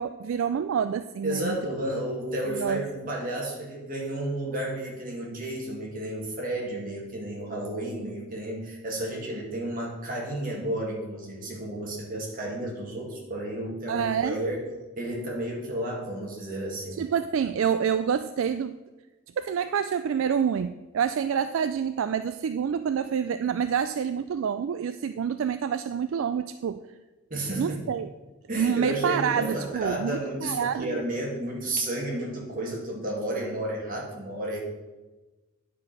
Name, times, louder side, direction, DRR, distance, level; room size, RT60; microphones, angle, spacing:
voice 1, 0.0-1.6 2.6-2.8 13.9-14.3 17.0-18.7 19.4-26.8 27.6-28.1 28.6-31.0, right 7 dB, 65° right, 11 dB, 0.3 m, -27 dB
voice 2, 1.2-14.7 15.0-17.0 27.3-27.8 28.5-34.6, right 1 dB, 40° right, -2 dB, 2.1 m, -32 dB
9.7 x 4.8 x 5.8 m, 1.2 s
head